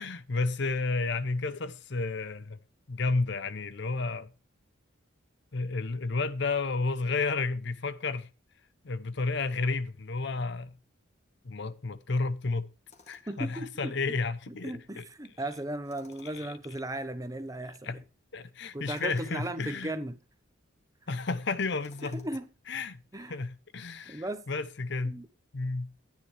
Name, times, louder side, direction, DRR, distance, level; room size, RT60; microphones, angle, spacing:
voice 1, 0.0-2.6 2.9-4.3 5.5-8.3 8.8-10.7 11.4-12.7 13.1-15.0 16.2-16.5 17.8-18.0 18.3-19.9 21.1-22.2 22.7-23.0 23.3-25.2 25.5-25.9, left 3 dB, 55° left, 0.7 m, -31 dB
Tools, 12.9-13.5 15.8-16.6 18.8-19.4 21.8-22.5, left 4 dB, 35° left, 1.9 m, -58 dB
voice 2, 13.3-14.2 14.5-18.0 18.7-20.2 22.0-22.5 23.1-23.4 24.0-24.4 25.0-25.3, right 1 dB, 15° right, 0.9 m, -36 dB
13.0 x 9.5 x 3.3 m
head